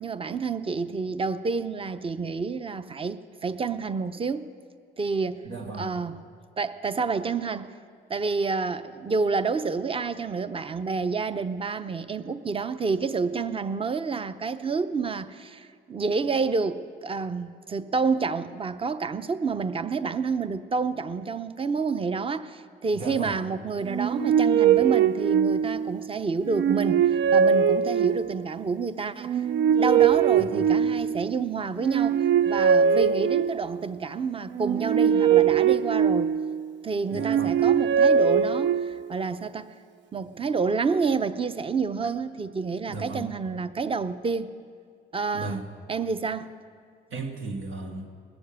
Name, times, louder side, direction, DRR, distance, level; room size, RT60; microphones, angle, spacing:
voice 1, 0.0-4.5 5.0-5.4 5.7-6.2 6.6-7.7 8.1-29.5 29.8-36.3 36.8-39.7 40.1-44.5 45.1-46.5, right 4 dB, 25° right, 0.7 m, -29 dB
voice 2, 5.4-5.9 22.9-23.3 30.4-30.7 37.1-37.5 42.9-43.2 45.3-45.6 47.1-48.1, right 3 dB, 85° right, 2.3 m, -35 dB
sound 1, 23.9-26.0 26.5-28.5 29.2-31.3 31.8-33.8 34.5-36.6 37.1-39.1, right 7 dB, 65° right, 0.4 m, -22 dB
20.0 x 7.2 x 8.6 m
cardioid pair, 90°, 20 cm